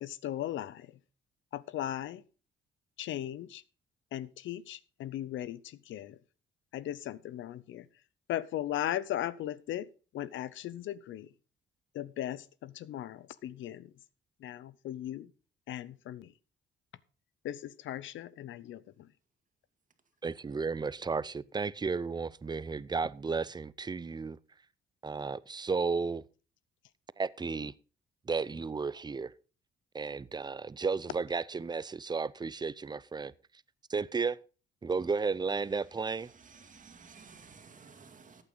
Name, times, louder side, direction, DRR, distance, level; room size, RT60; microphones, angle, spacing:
voice 1, 0.0-1.0 1.5-2.2 3.0-3.6 4.1-6.2 6.7-7.9 8.3-9.9 10.1-11.3 11.9-13.9 14.4-15.3 15.7-16.3 17.4-19.1, left 12 dB, 75° left, 0.7 m, -37 dB
voice 2, 20.2-24.4 25.0-26.2 27.2-27.7 28.3-29.3 29.9-33.3 33.9-34.4 34.8-36.3, right 4 dB, 20° right, 0.5 m, -33 dB
voice 3, 35.9-38.4, right 5 dB, 40° right, 2.3 m, -54 dB
14.0 x 9.0 x 3.9 m
cardioid pair, 90°, 20 cm